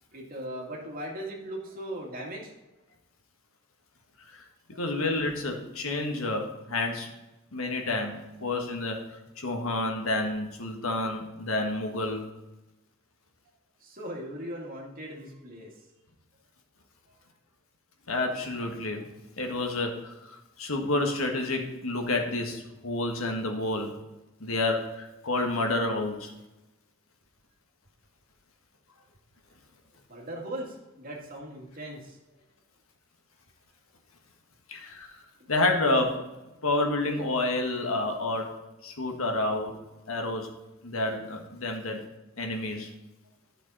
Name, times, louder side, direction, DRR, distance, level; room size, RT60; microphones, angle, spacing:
voice 1, 0.1-2.4 13.8-15.7 30.1-32.2, right 1 dB, 45° right, -1 dB, 2.3 m, -38 dB
voice 2, 4.8-7.1 7.5-9.0 9.4-12.3 18.1-19.1 19.4-24.0 24.4-26.3 34.7-35.1 35.5-36.2 36.6-38.5 38.8-39.8 40.1-40.5 40.8-42.0 42.4-42.9, left 2 dB, 80° left, 3 dB, 1.6 m, -29 dB
12.0 x 6.0 x 4.1 m, 1.0 s
head